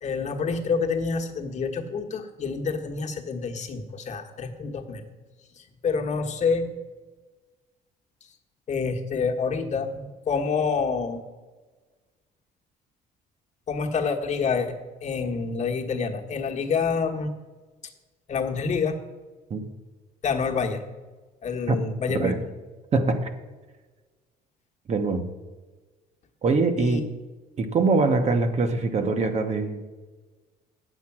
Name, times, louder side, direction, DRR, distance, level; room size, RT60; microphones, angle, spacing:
voice 1, 0.0-5.0 5.8-6.7 8.7-11.2 13.7-17.3 18.3-19.0 20.2-20.8 21.4-22.3 26.8-27.0, left 5 dB, 45° left, 2 dB, 1.3 m, -27 dB
voice 2, 22.9-23.3 24.9-25.3 26.4-27.0 27.6-29.9, right 3 dB, 40° right, 7 dB, 1.1 m, -23 dB
8.5 x 8.2 x 6.0 m, 1.3 s
cardioid pair, 110°, 17 cm